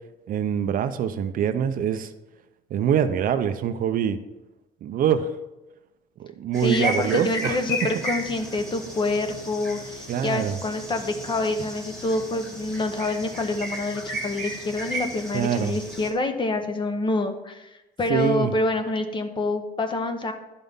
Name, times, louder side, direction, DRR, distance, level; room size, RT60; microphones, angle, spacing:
voice 1, 0.3-2.1 2.7-4.2 4.8-5.3 6.2-7.6 10.1-10.6 15.3-15.8 18.1-18.5, right 8 dB, 55° right, 10 dB, 0.5 m, -24 dB
sound 1, 6.5-16.1, equal, 5° left, 1.8 m, -34 dB
voice 2, 6.6-17.7 18.0-20.3, left 2 dB, 30° left, 7 dB, 0.9 m, -27 dB
11.5 x 5.5 x 3.6 m, 1.0 s
cardioid pair, 110°, 17 cm